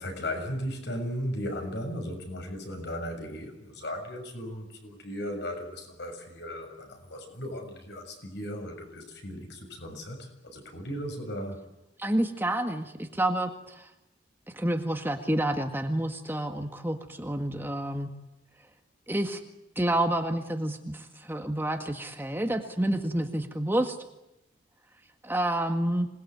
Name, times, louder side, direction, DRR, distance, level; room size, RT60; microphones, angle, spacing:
voice 1, 0.0-11.6, equal, 60° left, 5 dB, 6.9 m, -36 dB
voice 2, 12.0-13.9 14.5-18.1 19.1-19.4 19.8-24.0 25.2-26.1, right 1 dB, 10° right, 5 dB, 1.8 m, -29 dB
26.5 x 20.5 x 9.5 m, 0.89 s
head